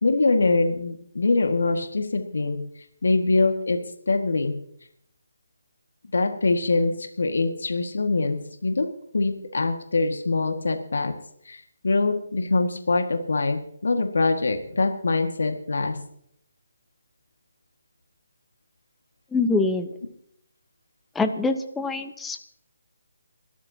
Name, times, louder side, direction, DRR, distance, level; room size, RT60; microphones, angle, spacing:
voice 1, 0.0-2.6 3.0-3.8 4.1-4.5 6.1-8.4 8.6-8.9 9.1-11.1 11.5-16.0, left 3 dB, 75° left, 5 dB, 1.9 m, -23 dB
voice 2, 19.3-19.9 21.1-22.4, left 3 dB, 5° left, 8 dB, 1.0 m, -24 dB
28.5 x 13.0 x 2.9 m, 0.70 s
figure-of-eight pair, 150°, 0 cm